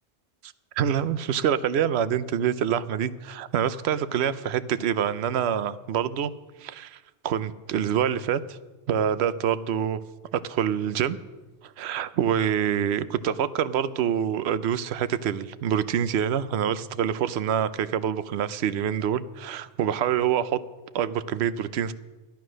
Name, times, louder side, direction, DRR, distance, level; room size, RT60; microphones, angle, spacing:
voice 1, 0.4-6.3 6.6-7.0 7.2-8.6 8.9-10.0 10.3-11.2 11.6-20.6 20.9-21.9, right 9 dB, 70° right, 15 dB, 0.9 m, -26 dB
13.0 x 12.0 x 6.3 m, 1.2 s
omnidirectional pair, 1.2 m